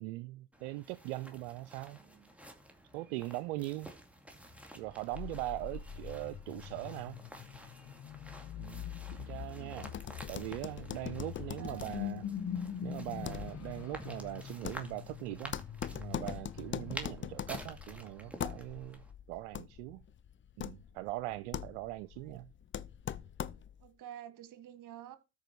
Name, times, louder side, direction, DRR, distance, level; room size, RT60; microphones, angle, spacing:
voice 1, 0.0-2.0 2.9-3.9 4.7-7.2 8.6-9.9 10.3-12.2 12.8-15.6 15.9-20.0 20.6-22.5, right 18 dB, 90° right, 0.5 m, -41 dB
sound 1, 0.5-19.1, equal, 5° right, 2.4 m, -51 dB
voice 2, 1.9-2.3 9.1-9.9 11.6-12.0 22.2-22.4 23.8-25.2, right 10 dB, 60° right, 1.6 m, -50 dB
sound 2, 5.1-18.4, left 9 dB, 55° left, 1.1 m, -44 dB
sound 3, 9.8-23.9, left 9 dB, 35° left, 0.6 m, -43 dB
13.5 x 5.0 x 4.6 m
hypercardioid pair, 65°, 35 cm